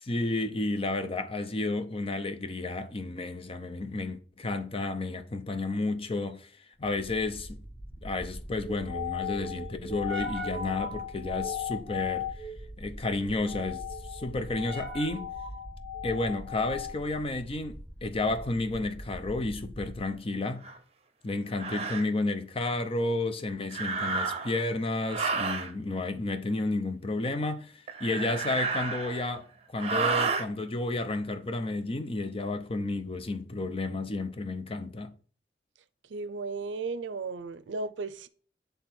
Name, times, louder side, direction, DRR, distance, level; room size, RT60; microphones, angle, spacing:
voice 1, 0.0-6.5 6.8-7.6 8.0-12.5 12.8-15.3 16.0-20.7 21.2-29.5 29.7-35.1, left 2 dB, 30° left, 0.6 m, -32 dB
space ship cockpit, 6.8-20.1, left 5 dB, 5° left, 1.6 m, -38 dB
sound 1, 20.6-20.8 21.5-22.1 23.7-24.6 25.1-25.7 27.9-29.3 29.8-30.5, right 4 dB, 35° right, 0.7 m, -31 dB
voice 2, 36.1-38.3, right 4 dB, 80° right, 0.5 m, -35 dB
8.1 x 3.4 x 4.3 m
head